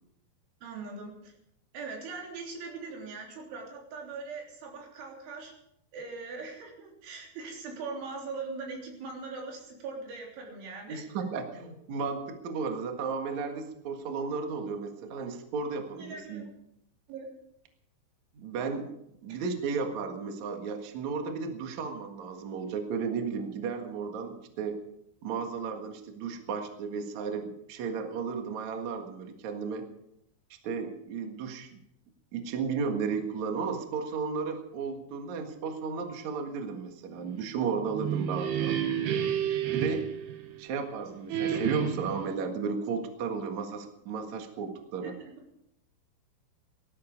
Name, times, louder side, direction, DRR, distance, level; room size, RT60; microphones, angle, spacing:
voice 1, 0.6-1.3 1.7-5.5 5.9-11.1 15.9-16.4 17.1-17.3 19.3-19.4 45.0-45.3, right 4 dB, 85° right, 0 dB, 5.9 m, -41 dB
voice 2, 10.9-16.4 18.3-18.9 19.2-24.8 25.2-29.9 30.6-31.7 32.3-38.8 39.7-40.1 40.6-45.1, right 5 dB, 55° right, 4 dB, 2.3 m, -34 dB
sound 1, 37.8-40.8 41.3-42.3, right 9 dB, 70° right, 3.2 m, -30 dB
18.0 x 13.5 x 5.3 m, 0.79 s
omnidirectional pair, 5.3 m